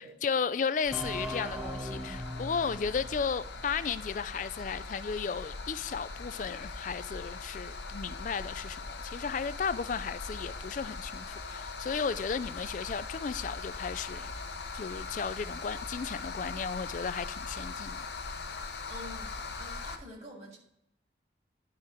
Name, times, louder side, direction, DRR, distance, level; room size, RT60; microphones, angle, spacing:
voice 1, 0.0-14.3 14.7-18.0, left 6 dB, 45° left, 0.3 m, -34 dB
sound 1, 0.8-20.0, left 4 dB, 65° left, 0.8 m, -41 dB
sound 2, 0.9-4.5, equal, 5° right, 0.7 m, -40 dB
voice 2, 18.9-20.6, equal, 35° right, 2.2 m, -47 dB
10.5 x 4.9 x 4.4 m
head